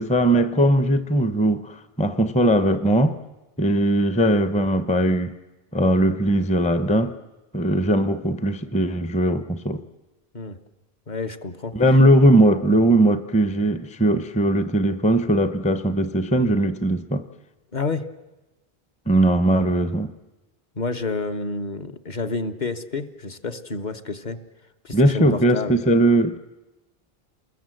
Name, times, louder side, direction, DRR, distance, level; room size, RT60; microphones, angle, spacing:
voice 1, 0.0-3.2 3.6-5.4 5.7-7.2 7.5-9.8 11.7-17.3 19.1-20.1 24.9-26.4, right 1 dB, 10° left, 0.6 m, -19 dB
voice 2, 11.1-11.7 17.7-18.0 20.8-24.4 24.8-25.8, left 3 dB, 45° left, 1.1 m, -29 dB
28.0 x 21.0 x 7.8 m
omnidirectional pair, 1.0 m